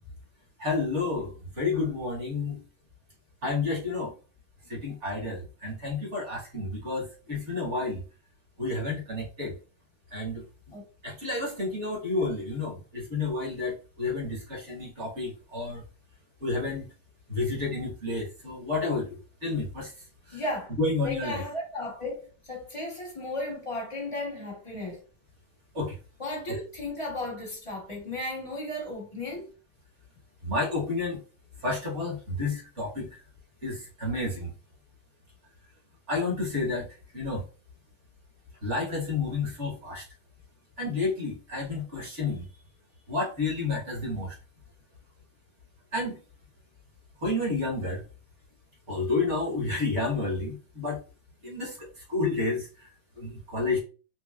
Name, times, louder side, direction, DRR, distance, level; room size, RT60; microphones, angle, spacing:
voice 1, 0.6-2.6 3.4-4.1 4.7-8.0 8.6-9.5 10.1-10.4 11.0-15.8 16.4-16.9 17.3-19.9 20.3-20.4 20.8-21.4 25.7-26.0 26.5-26.6 30.4-31.2 31.6-33.2 33.6-34.5 36.1-36.9 37.1-37.4 38.6-40.0 40.8-42.5 43.1-44.3 45.9-46.2 47.2-48.0 48.9-51.0 51.4-52.9 53.2-53.8, left 3 dB, 40° right, 1.6 m, -30 dB
voice 2, 20.3-20.7 21.0-25.0 26.2-29.5, left 1 dB, 20° left, 0.9 m, -35 dB
4.6 x 2.7 x 2.5 m
omnidirectional pair, 2.2 m